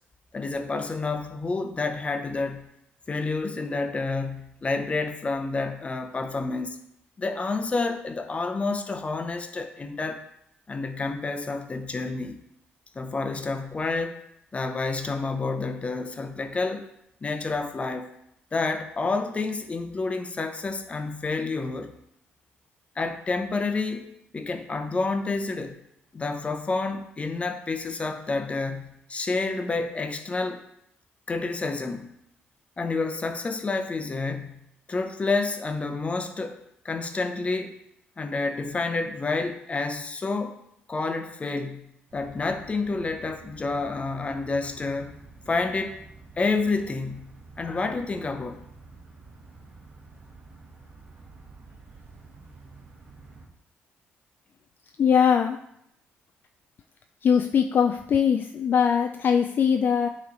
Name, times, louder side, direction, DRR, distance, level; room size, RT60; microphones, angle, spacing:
voice 1, 0.3-2.7 3.1-6.8 7.2-10.2 10.7-12.4 12.9-14.2 14.5-16.9 17.2-18.1 18.5-21.9 23.0-25.8 26.1-30.6 31.3-32.1 32.8-34.6 34.9-37.8 38.2-40.6 40.9-45.1 45.5-46.0 46.4-48.6, left 3 dB, 30° left, 7 dB, 0.8 m, -29 dB
sound 1, 42.1-53.5, right 3 dB, 50° right, 1.6 m, -49 dB
voice 2, 55.0-55.6 57.2-60.1, left 7 dB, 50° left, 6 dB, 0.3 m, -21 dB
9.4 x 3.2 x 3.9 m, 0.77 s
cardioid pair, 85°, 4 cm